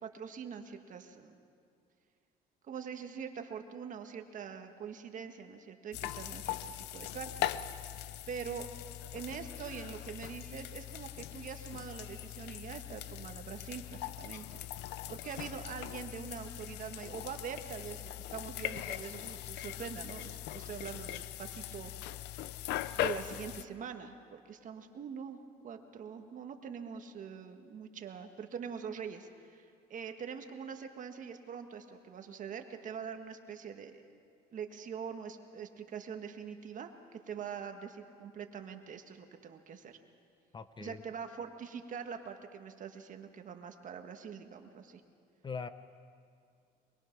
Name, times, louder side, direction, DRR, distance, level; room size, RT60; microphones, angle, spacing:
voice 1, 0.0-1.4 2.7-6.6 6.9-7.5 8.3-8.7 9.1-14.5 14.9-21.9 22.9-25.4 25.6-34.0 34.5-40.0 40.8-45.0, right 7 dB, 50° right, 6 dB, 1.6 m, -44 dB
sound 1, 5.9-23.6, left 13 dB, 85° left, 0.6 m, -41 dB
voice 2, 40.5-41.0 45.4-45.7, left 5 dB, 25° left, 12 dB, 0.7 m, -41 dB
23.5 x 22.0 x 6.0 m, 2.3 s
cardioid pair, 110°, 17 cm